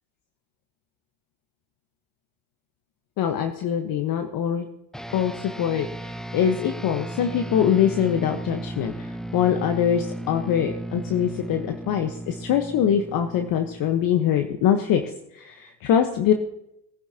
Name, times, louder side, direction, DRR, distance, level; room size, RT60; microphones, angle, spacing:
voice 1, 3.2-4.7 5.1-16.3, left 9 dB, 45° left, 6 dB, 1.2 m, -23 dB
sound 1, 4.9-14.6, right 1 dB, ahead, 0.5 m, -35 dB
22.5 x 10.5 x 2.9 m, 0.82 s
hypercardioid pair, 85°, 45 cm